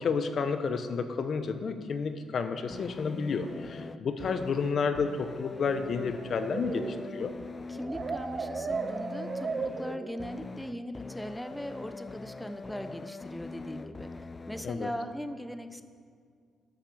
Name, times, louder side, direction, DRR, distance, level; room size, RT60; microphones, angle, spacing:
voice 1, 0.0-7.3 14.6-14.9, left 5 dB, 55° left, 9 dB, 1.0 m, -31 dB
sound 1, 2.7-14.7, left 3 dB, 25° left, 0.5 m, -43 dB
sound 2, 6.4-10.5, right 4 dB, 40° right, 1.0 m, -35 dB
voice 2, 7.7-15.8, equal, 5° left, 8 dB, 0.8 m, -39 dB
12.0 x 10.5 x 7.0 m, 2.1 s
cardioid pair, 90°, 0 cm